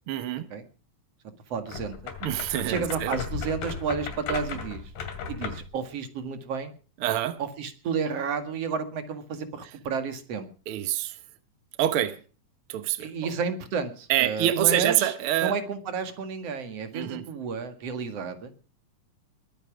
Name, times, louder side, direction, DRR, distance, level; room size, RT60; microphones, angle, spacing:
voice 1, 0.1-0.5 2.2-3.1 7.0-7.4 10.7-11.2 11.8-12.2 12.7-13.3 14.1-15.5 16.9-17.2, right 12 dB, 75° right, 1.2 m, -26 dB
voice 2, 1.5-2.1 2.7-4.8 5.3-6.7 7.4-10.5 13.0-15.1 15.4-18.5, right 5 dB, 50° right, 2.6 m, -31 dB
sound 1, 1.6-5.7, left 6 dB, 80° left, 3.9 m, -35 dB
21.5 x 9.4 x 6.1 m
omnidirectional pair, 4.0 m